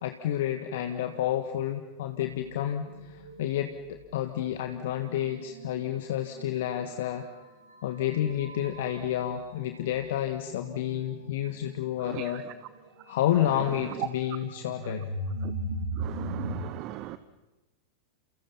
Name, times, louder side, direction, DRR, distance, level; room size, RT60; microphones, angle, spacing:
voice 1, 0.0-7.3 7.8-12.4 13.1-15.1, left 11 dB, 55° left, 1.6 m, -30 dB
sound 1, 0.8-1.3 2.1-16.6, right 1 dB, 85° right, 6.2 m, -40 dB
voice 2, 16.0-17.2, right 16 dB, 40° right, 0.9 m, -39 dB
29.5 x 29.0 x 5.8 m
figure-of-eight pair, 90°, 0 cm